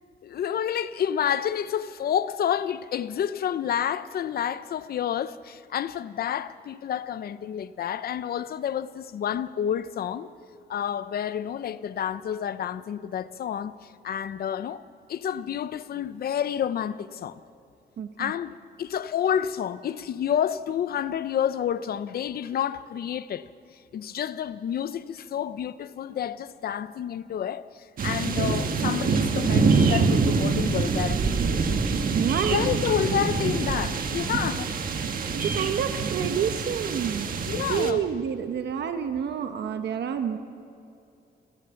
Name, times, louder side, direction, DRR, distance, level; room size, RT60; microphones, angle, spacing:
voice 1, 0.2-10.3 10.7-14.8 15.1-17.4 18.2-23.5 23.9-31.6 32.5-34.7 37.4-38.0, left 9 dB, 60° left, 0.7 m, -29 dB
voice 2, 18.0-18.3 32.1-32.6 35.3-37.3 37.7-40.4, right 8 dB, 70° right, 1.2 m, -28 dB
sound 1, 28.0-37.9, right 4 dB, 50° right, 1.4 m, -25 dB
27.5 x 15.0 x 7.1 m
wide cardioid pair, 165°, 18 cm